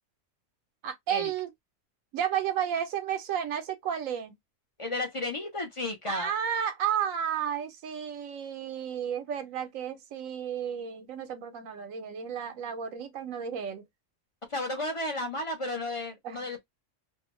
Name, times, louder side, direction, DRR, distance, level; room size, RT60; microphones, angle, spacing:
voice 1, 0.8-1.5 2.1-4.4 6.1-13.8 16.2-16.4, right 9 dB, 85° right, 1.0 m, -32 dB
voice 2, 4.8-6.3 14.5-16.6, left 2 dB, 35° left, 0.6 m, -33 dB
2.6 x 2.1 x 2.9 m
omnidirectional pair, 1.3 m